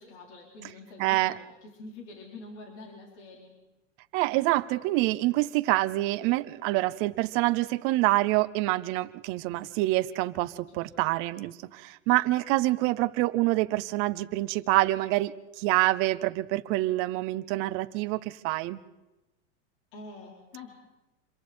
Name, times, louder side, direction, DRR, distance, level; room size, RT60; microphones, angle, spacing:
voice 1, 0.0-3.5 10.7-10.9 19.9-20.8, left 3 dB, 65° left, 0 dB, 4.4 m, -46 dB
voice 2, 1.0-1.3 4.1-18.8, right 19 dB, 35° right, 12 dB, 0.7 m, -26 dB
26.5 x 23.0 x 4.4 m, 1.0 s
supercardioid pair, 155°, 37 cm